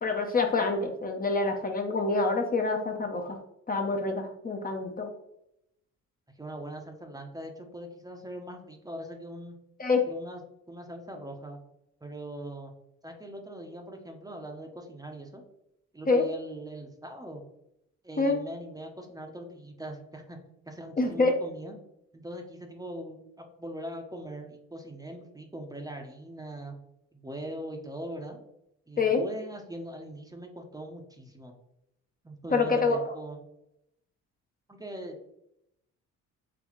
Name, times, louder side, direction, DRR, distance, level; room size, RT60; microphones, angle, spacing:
voice 1, 0.0-3.4 3.7-5.1 9.8-10.0 16.1-16.2 18.2-18.4 21.0-21.3 29.0-29.2 32.5-33.1, left 3 dB, 30° left, 3 dB, 0.6 m, -26 dB
voice 2, 6.4-9.6 10.1-10.4 10.7-11.6 12.0-12.7 13.0-15.4 15.9-17.4 18.0-20.4 20.7-21.8 22.1-26.7 27.1-28.4 28.9-31.5 32.2-33.4 34.7-35.2, right 1 dB, 10° right, 3 dB, 0.6 m, -41 dB
4.0 x 3.3 x 3.0 m, 0.82 s
cardioid pair, 90°, 30 cm